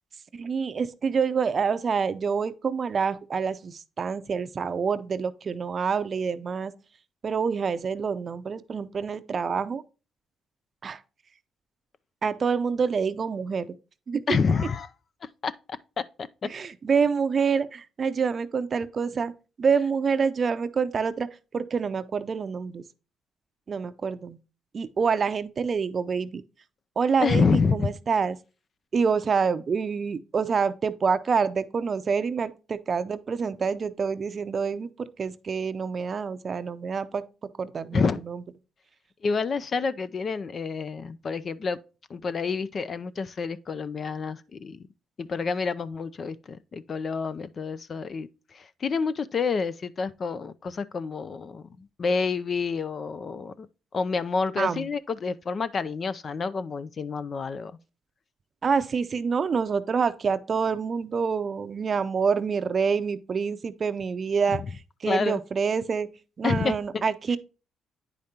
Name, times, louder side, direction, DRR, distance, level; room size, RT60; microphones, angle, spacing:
voice 1, 0.3-6.7 7.2-9.8 10.8-11.0 12.2-13.7 14.1-14.2 16.4-19.3 19.6-22.8 23.7-24.4 24.7-26.4 27.0-28.4 28.9-37.2 37.6-38.4 54.6-54.9 58.6-64.6 65.0-66.1 66.4-67.4, right 5 dB, 45° right, 0.6 m, -27 dB
voice 2, 14.3-14.9 15.4-15.5 27.2-27.9 37.9-38.2 39.2-41.8 42.1-44.8 45.2-53.7 53.9-57.7 64.5-64.6 65.0-65.4 66.4-67.0, left 5 dB, 45° left, 0.5 m, -28 dB
9.4 x 5.1 x 2.8 m
cardioid pair, 90°, 0 cm